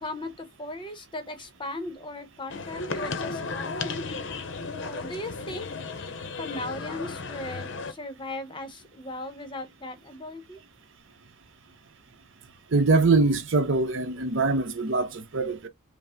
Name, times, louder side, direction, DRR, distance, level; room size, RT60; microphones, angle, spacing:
voice 1, 0.0-4.0 4.8-5.7 6.4-10.6, left 2 dB, 25° left, 0.8 m, -37 dB
sound 1, 2.5-7.9, left 4 dB, 60° left, 0.6 m, -34 dB
voice 2, 12.7-15.7, right 3 dB, 65° right, 0.7 m, -23 dB
5.3 x 2.0 x 3.5 m
head